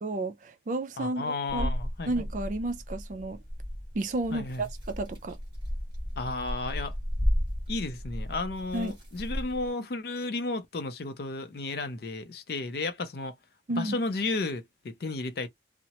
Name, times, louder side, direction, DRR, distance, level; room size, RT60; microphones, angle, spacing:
voice 1, 0.0-1.7 2.1-3.4 3.9-5.4 8.7-8.9 13.7-14.0, right 2 dB, 45° right, 0.4 m, -32 dB
voice 2, 1.0-2.1 4.3-4.7 6.2-7.0 7.7-13.4 13.7-15.5, left 3 dB, 55° left, 0.5 m, -33 dB
sound 1, 1.5-9.7, equal, 25° right, 1.3 m, -34 dB
2.8 x 2.0 x 2.9 m
head